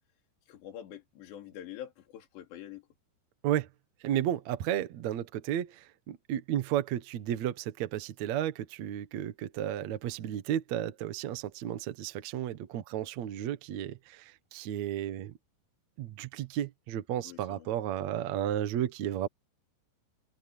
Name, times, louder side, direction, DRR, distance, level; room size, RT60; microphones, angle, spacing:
voice 1, 0.5-2.9 17.2-17.7, left 11 dB, 70° left, 4.9 m, -46 dB
voice 2, 4.0-15.3 16.0-19.3, right 11 dB, 70° right, 1.7 m, -33 dB
omnidirectional pair, 5.2 m